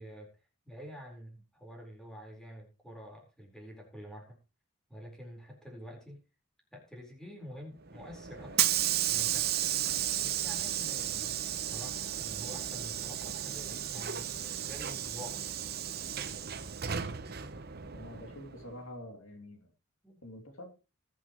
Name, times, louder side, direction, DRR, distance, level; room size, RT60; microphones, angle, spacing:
voice 1, 0.0-4.4 4.9-6.2 6.7-8.6 9.1-9.5 10.2-15.5 20.0-20.2, equal, 5° left, 0 dB, 4.3 m, -48 dB
Hiss / Sliding door, 7.9-18.7, right 10 dB, 45° right, 0.9 m, -34 dB
voice 2, 17.9-19.7 20.2-20.8, left 1 dB, 65° left, 4 dB, 2.8 m, -47 dB
20.0 x 8.5 x 3.1 m, 0.29 s
head